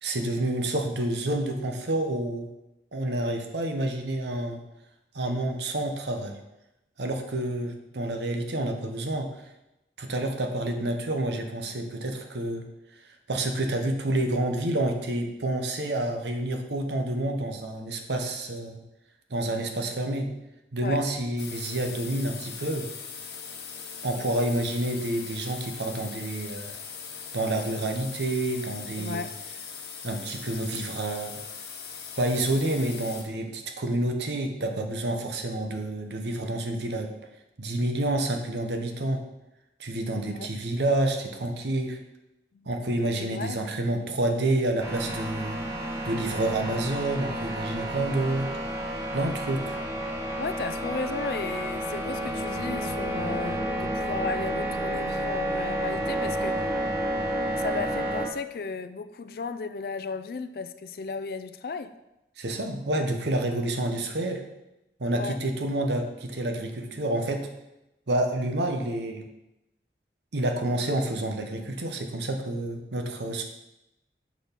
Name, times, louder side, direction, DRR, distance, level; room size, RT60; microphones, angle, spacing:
voice 1, 0.0-2.5 2.9-4.6 5.1-6.4 7.0-9.3 10.0-12.6 13.3-18.8 19.3-20.3 20.7-22.9 24.0-26.8 27.3-29.3 30.0-31.4 32.2-37.1 37.6-39.2 39.8-42.0 42.7-45.6 46.0-48.5 49.1-49.8 62.4-64.4 65.0-67.5 68.1-69.3 70.3-73.4, right 1 dB, 80° right, 5 dB, 0.8 m, -28 dB
sound 1, 21.4-33.2, left 6 dB, 70° left, 0.9 m, -40 dB
voice 2, 29.0-29.4 40.3-40.5 42.5-42.7 43.2-43.6 50.4-56.8 57.6-61.9 65.1-65.4, left 4 dB, 55° left, 12 dB, 0.3 m, -34 dB
sound 2, 44.8-58.3, right 1 dB, 15° right, 0.8 m, -30 dB
6.2 x 5.7 x 3.5 m, 0.92 s
head